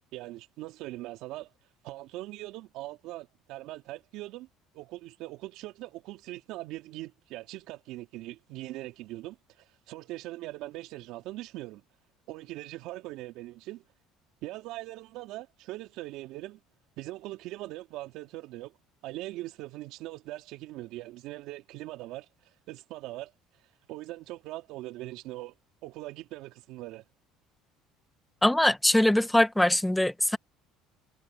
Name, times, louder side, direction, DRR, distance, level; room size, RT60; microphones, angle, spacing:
voice 1, 0.1-1.5 1.8-4.5 4.7-11.8 12.3-13.8 14.4-16.6 17.0-18.8 19.0-22.3 22.7-23.3 23.9-25.5 25.8-27.0, right 17 dB, 70° right, 2.9 m, -41 dB
voice 2, 28.4-30.4, left 1 dB, 5° left, 1.5 m, -22 dB
supercardioid pair, 80°, 0 cm